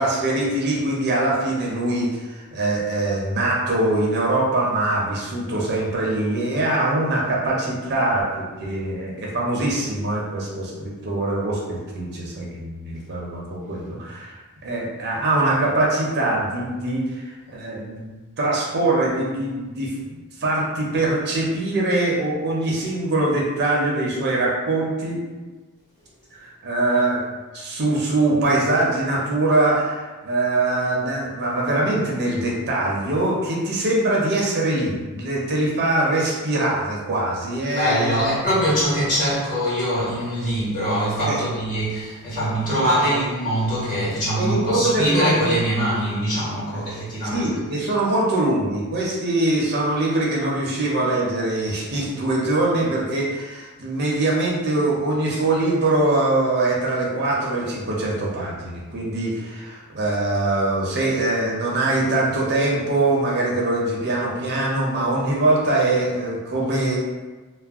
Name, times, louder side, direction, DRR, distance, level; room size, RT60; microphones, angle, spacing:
voice 1, 0.0-8.3 8.6-14.4 14.6-25.2 26.3-27.2 27.5-38.2 41.3-41.4 44.3-45.5 46.7-46.8 47.3-67.0, right 2 dB, 50° right, -3 dB, 0.5 m, -23 dB
voice 2, 37.7-47.5, equal, 35° left, -9 dB, 1.1 m, -23 dB
2.3 x 2.1 x 3.4 m, 1.3 s
head